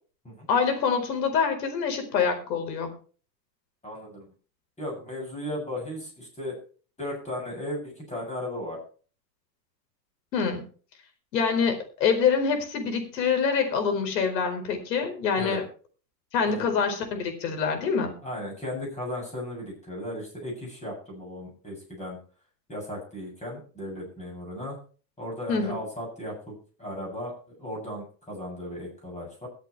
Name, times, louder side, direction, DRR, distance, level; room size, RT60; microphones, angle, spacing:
voice 1, 0.5-2.9 10.3-10.6 11.3-15.6 16.3-18.1 25.5-25.7, left 6 dB, 80° left, 6 dB, 4.5 m, -25 dB
voice 2, 3.8-4.3 4.8-6.6 7.0-8.8 15.4-15.6 16.5-16.6 18.2-22.2 22.7-24.8 25.2-26.5 26.8-27.3 27.6-29.5, left 1 dB, 15° left, -2 dB, 7.8 m, -36 dB
22.5 x 8.2 x 3.3 m, 0.39 s
supercardioid pair, 115°, 49 cm